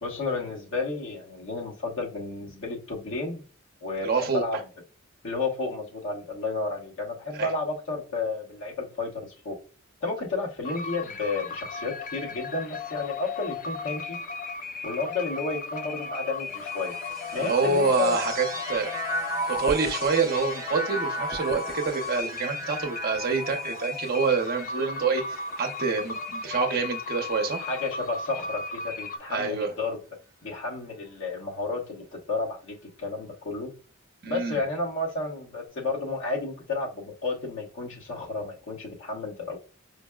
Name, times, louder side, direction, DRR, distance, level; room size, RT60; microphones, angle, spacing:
voice 1, 0.0-3.5 3.8-4.6 5.2-9.6 10.0-14.2 14.8-17.0 17.3-18.2 27.6-30.0 30.4-33.7 34.3-39.6, left 3 dB, 65° left, 1.2 m, -32 dB
voice 2, 4.0-4.4 7.3-7.5 17.4-18.9 19.5-27.7 29.3-29.7 34.2-34.6, right 4 dB, 50° right, 0.7 m, -27 dB
sound 1, 10.6-29.2, left 5 dB, 40° left, 0.3 m, -36 dB
sound 2, 16.5-27.9 28.7-29.5, right 2 dB, 20° right, 0.9 m, -37 dB
5.0 x 2.1 x 2.2 m
head